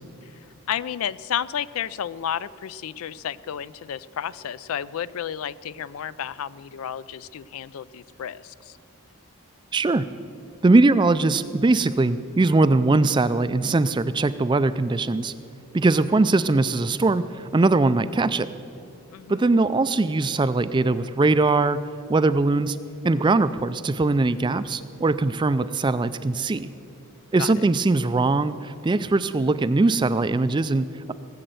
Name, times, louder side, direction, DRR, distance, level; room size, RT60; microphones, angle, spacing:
voice 1, 0.7-8.8 19.1-19.5 27.4-27.5, left 9 dB, 70° left, 18 dB, 0.4 m, -32 dB
voice 2, 9.7-10.1 10.6-15.3 15.7-18.5 19.3-21.8 22.1-22.8 23.0-26.7 27.3-31.1, right 3 dB, 20° right, 14 dB, 0.3 m, -21 dB
18.5 x 7.8 x 7.8 m, 2.6 s
head